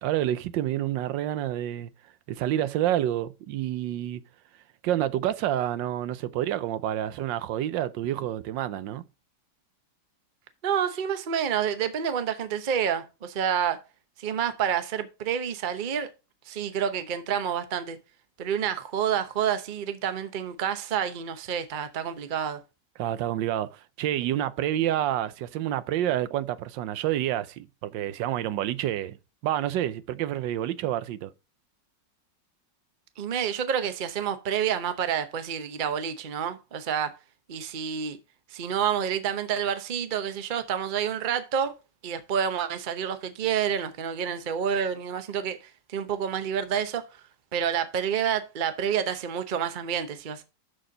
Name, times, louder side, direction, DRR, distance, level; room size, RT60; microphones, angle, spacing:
voice 1, 0.0-1.9 2.3-4.2 4.8-9.0 23.0-29.2 29.4-31.3, right 12 dB, 85° right, 1.3 m, -28 dB
voice 2, 10.6-13.8 14.2-16.1 16.5-18.0 18.4-22.6 33.2-37.1 37.5-38.2 38.5-41.7 42.0-45.6 45.9-47.1 47.5-50.4, right 8 dB, 40° right, 0.7 m, -28 dB
12.5 x 4.3 x 3.8 m
omnidirectional pair, 2.0 m